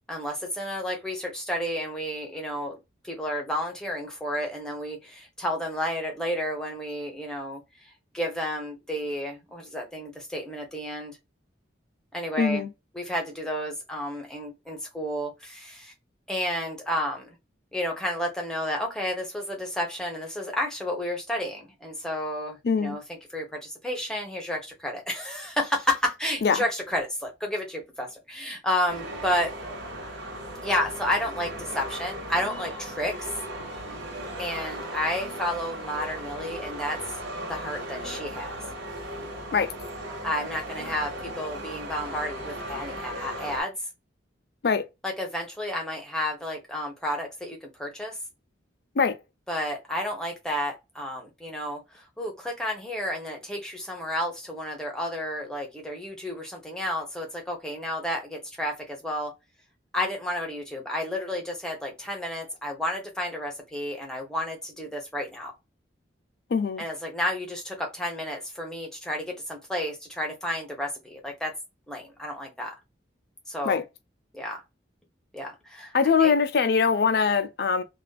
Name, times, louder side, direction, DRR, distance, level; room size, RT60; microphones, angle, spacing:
voice 1, 0.1-2.8 3.0-11.2 12.1-12.6 12.9-15.9 16.3-17.3 17.7-29.5 30.6-33.3 34.4-37.0 37.5-38.5 40.2-43.7 45.0-48.2 49.5-59.3 59.9-65.5 66.8-71.5 71.9-72.7 73.5-73.8 74.3-74.6 75.3-75.9 76.2-76.3, left 1 dB, 5° left, 0.6 m, -31 dB
voice 2, 12.4-12.7 22.6-23.0 26.4-26.6 39.5-39.7 44.6-44.9 49.0-49.2 66.5-66.8 73.6-73.8 75.9-77.8, left 5 dB, 55° left, 0.4 m, -22 dB
sound 1, 28.9-43.6, right 1 dB, 65° right, 1.2 m, -37 dB
2.4 x 2.3 x 2.2 m
head